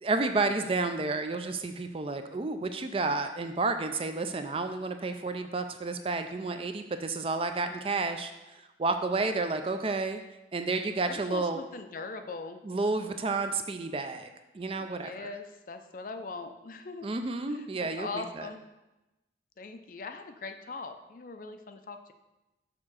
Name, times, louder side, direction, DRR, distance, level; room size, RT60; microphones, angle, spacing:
voice 1, 0.0-10.2 10.5-11.6 12.6-14.3 14.5-15.3 17.0-18.5, right 3 dB, 30° right, 7 dB, 0.4 m, -31 dB
voice 2, 11.0-12.6 14.8-17.1 17.5-18.6 19.6-22.1, left 3 dB, 45° left, 7 dB, 0.5 m, -41 dB
6.6 x 3.6 x 6.3 m, 0.99 s
head